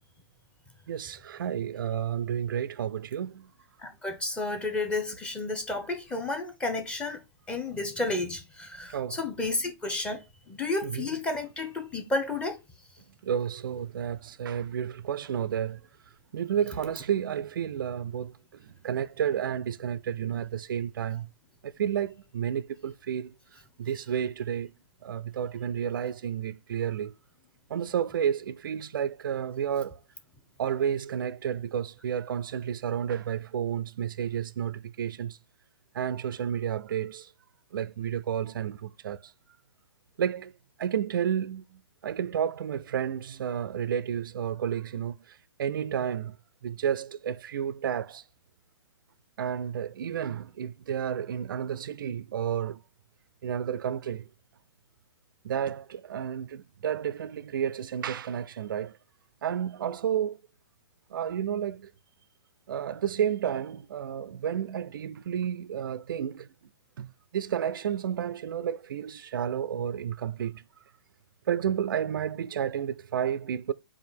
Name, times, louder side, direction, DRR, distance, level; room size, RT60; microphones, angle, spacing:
voice 1, 0.9-3.5 8.9-9.2 10.8-11.1 13.2-15.8 16.3-18.3 18.6-21.3 21.6-23.3 23.8-24.7 25.0-27.1 27.7-30.0 30.6-35.4 35.9-37.3 37.7-39.2 40.2-40.5 40.8-45.2 45.6-46.4 46.6-48.2 49.4-52.8 53.4-54.2 55.4-59.0 59.4-60.4 61.1-61.9 62.7-66.5 67.0-70.6 71.5-73.7, right 9 dB, 50° right, 0.4 m, -31 dB
voice 2, 3.8-7.2 7.5-10.2 10.5-12.6, left 2 dB, 5° left, 0.7 m, -31 dB
4.9 x 2.4 x 4.3 m
figure-of-eight pair, 120°, 14 cm